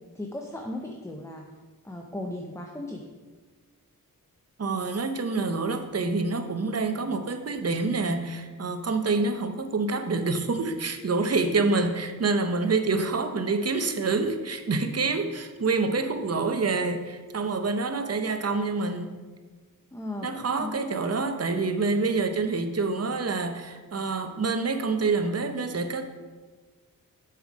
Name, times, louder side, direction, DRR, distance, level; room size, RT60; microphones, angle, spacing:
voice 1, 0.1-1.4 1.8-3.0 19.9-21.1, left 1 dB, 10° left, 2 dB, 0.7 m, -37 dB
voice 2, 4.6-19.1 20.2-26.0, right 3 dB, 45° right, 7 dB, 0.8 m, -27 dB
7.1 x 5.8 x 4.9 m, 1.4 s
wide cardioid pair, 70°, 34 cm